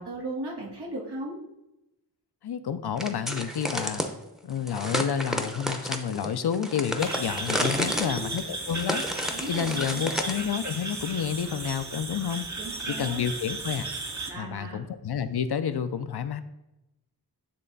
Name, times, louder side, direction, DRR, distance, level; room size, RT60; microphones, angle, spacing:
voice 1, 0.0-1.4 7.7-8.3 9.3-10.1 12.6-13.2 14.3-14.8, right 1 dB, 90° right, -4 dB, 1.8 m, -37 dB
voice 2, 2.4-4.0 4.4-9.0 9.5-12.5 12.9-13.9 14.3-16.4, left 8 dB, 75° left, 11 dB, 0.6 m, -30 dB
sound 1, 3.0-4.1 4.7-10.4, equal, ahead, 0.7 m, -31 dB
sound 2, 7.0-14.3, right 2 dB, 45° right, 0.9 m, -35 dB
9.5 x 3.3 x 4.0 m, 0.92 s
wide cardioid pair, 55°, 39 cm